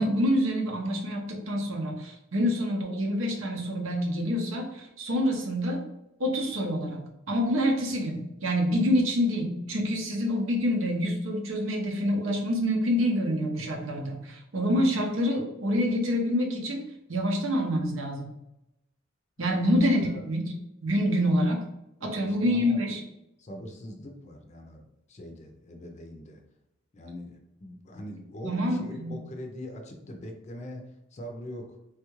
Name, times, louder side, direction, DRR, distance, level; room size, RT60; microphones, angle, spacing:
voice 1, 0.0-5.8 6.2-16.8 17.1-18.3 19.4-20.5 20.8-21.6 22.0-23.0 28.4-29.2, equal, 75° right, 2 dB, 0.7 m, -27 dB
voice 2, 22.0-22.9 23.4-26.4 26.9-31.8, equal, 35° left, 3 dB, 0.5 m, -42 dB
3.4 x 2.3 x 3.0 m, 0.87 s
head